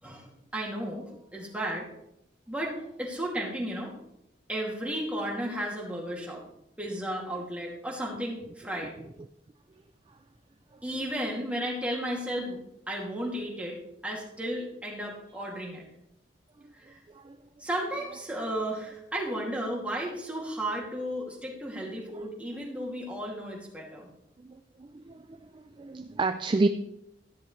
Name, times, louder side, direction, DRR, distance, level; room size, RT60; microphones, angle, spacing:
voice 1, 0.0-1.0 1.3-1.9 2.5-3.9 4.5-6.4 6.8-8.9 10.8-12.6 12.9-13.8 14.0-15.9 16.7-17.0 17.6-24.1, right 1 dB, 5° right, -3 dB, 2.6 m, -34 dB
voice 2, 24.4-25.2 25.5-26.7, right 3 dB, 25° right, 8 dB, 0.4 m, -30 dB
13.0 x 11.0 x 3.3 m, 0.81 s
head